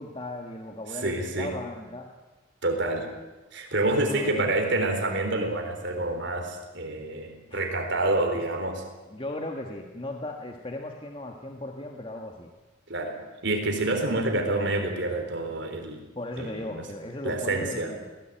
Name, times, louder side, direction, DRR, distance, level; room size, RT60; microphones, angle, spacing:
voice 1, 0.0-2.1 4.0-4.5 7.5-7.7 9.1-12.5 16.1-18.1, left 1 dB, 25° left, 2 dB, 1.6 m, -37 dB
voice 2, 1.0-1.5 2.6-3.1 3.5-8.8 12.9-13.1 13.4-16.0 16.4-16.8 17.2-17.9, right 2 dB, 55° right, 4 dB, 4.0 m, -27 dB
21.5 x 17.5 x 9.1 m, 1.2 s
head